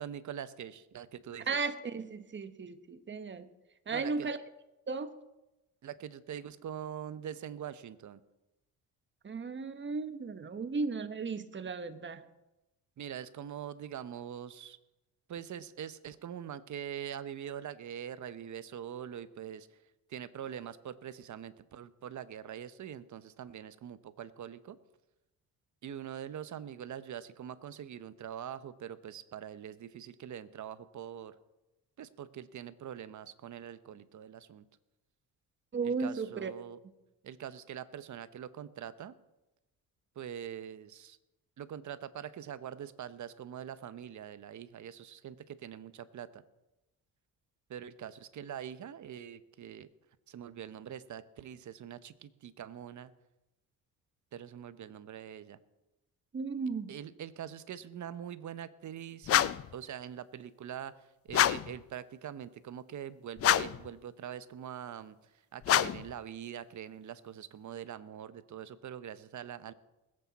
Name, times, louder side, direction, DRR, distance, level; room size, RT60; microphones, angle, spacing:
voice 1, 0.0-1.6 3.9-4.3 5.8-8.2 13.0-14.8 15.3-19.8 20.1-24.8 25.8-31.3 32.0-34.7 35.8-36.8 37.2-39.1 40.2-41.2 41.6-46.4 47.7-49.9 50.3-53.1 54.3-55.6 56.9-69.7, right 9 dB, 50° right, 14 dB, 0.9 m, -43 dB
voice 2, 1.5-3.5 3.9-4.4 4.9-5.1 9.2-12.2 35.7-36.5 56.3-56.9, right 4 dB, 30° right, 10 dB, 1.2 m, -35 dB
sound 1, 59.2-59.7 61.3-61.8 63.4-63.9 65.6-66.1, left 11 dB, 40° left, 0.4 m, -27 dB
21.0 x 8.6 x 4.1 m, 0.98 s
cardioid pair, 80°, 36 cm